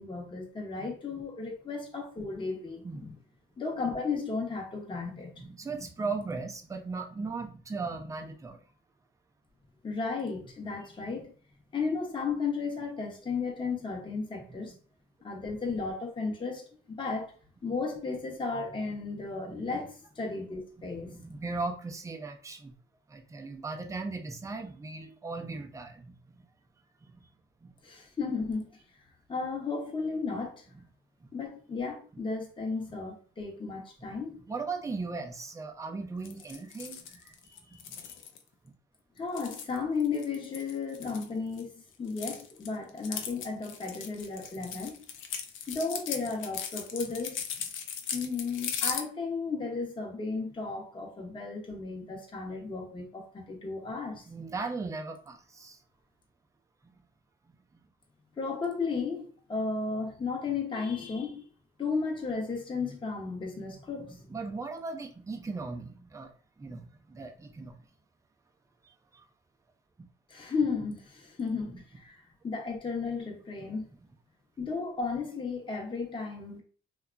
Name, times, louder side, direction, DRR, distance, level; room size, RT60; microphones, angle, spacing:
voice 1, 0.0-3.1 3.6-5.4 9.8-11.3 11.7-14.7 15.2-17.3 17.6-21.2 27.8-28.7 29.3-30.6 31.3-34.4 39.2-45.0 45.7-47.4 48.1-54.2 58.4-61.5 61.8-64.2 70.3-73.9 74.6-76.6, left 4 dB, 25° left, 0.8 m, -34 dB
voice 2, 5.4-8.6 11.1-11.2 19.5-19.8 20.9-22.7 23.1-26.4 27.1-27.2 27.6-27.7 34.5-38.2 44.6-44.7 54.3-55.8 64.0-66.3 66.6-67.8 68.8-69.3 73.6-73.7, right 3 dB, 15° right, 0.4 m, -38 dB
sound 1, 36.2-38.4 39.2-41.6 41.9-49.0, left 7 dB, 80° left, 0.5 m, -38 dB
2.8 x 2.2 x 2.4 m
cardioid pair, 90°, 20 cm